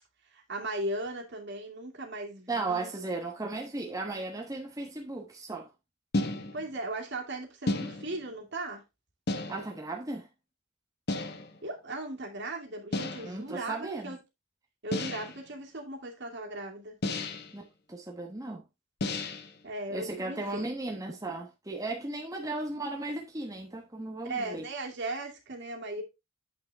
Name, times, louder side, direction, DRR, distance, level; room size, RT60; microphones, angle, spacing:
voice 1, 0.3-2.9 6.5-8.8 11.6-14.2 14.8-17.0 19.6-20.6 24.2-26.0, right 2 dB, 55° right, 2.4 m, -37 dB
voice 2, 2.5-5.7 9.5-10.3 13.2-14.1 17.5-17.6 17.9-18.6 19.9-24.7, right 2 dB, 15° right, 1.1 m, -36 dB
sound 1, 6.1-6.8 7.7-8.3 9.3-9.8 11.1-11.6 12.9-13.4 14.9-15.5 17.0-17.6 19.0-19.6, left 2 dB, 50° left, 1.1 m, -33 dB
8.6 x 6.2 x 3.4 m
head